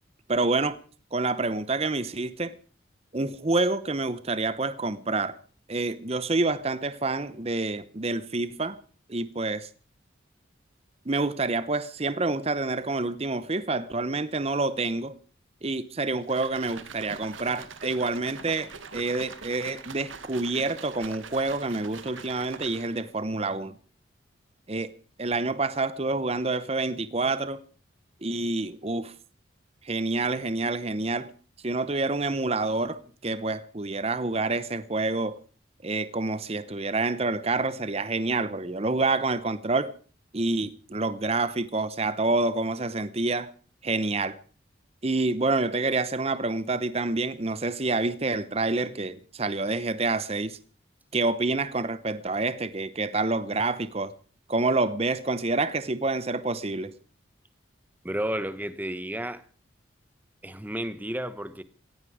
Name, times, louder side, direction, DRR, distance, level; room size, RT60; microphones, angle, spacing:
voice 1, 0.3-0.8 1.1-2.5 3.1-5.4 5.7-8.8 9.1-9.7 11.1-15.1 15.6-23.7 24.7-24.9 25.2-27.6 28.2-29.1 29.8-31.3 31.6-35.4 35.8-39.9 40.3-43.5 43.8-44.4 45.0-50.6 51.1-54.1 54.5-56.9, right 3 dB, 30° right, 0.8 m, -27 dB
sound 1, 16.2-23.1, right 5 dB, 90° right, 2.0 m, -43 dB
voice 2, 58.0-59.5 60.4-61.6, right 1 dB, 10° right, 1.1 m, -32 dB
17.5 x 16.0 x 4.9 m
head